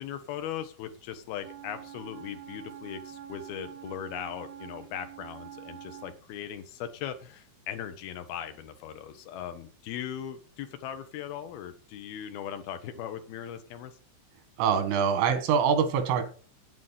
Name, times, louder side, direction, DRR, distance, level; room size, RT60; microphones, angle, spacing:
voice 1, 0.0-14.0, left 9 dB, 70° left, 8 dB, 2.5 m, -39 dB
Wind instrument woodwind instrument, 1.4-6.2, right 10 dB, 70° right, 2.7 m, -46 dB
voice 2, 14.6-16.2, right 7 dB, 90° right, 7 dB, 4.3 m, -24 dB
9.3 x 8.4 x 5.6 m, 0.40 s
omnidirectional pair, 5.5 m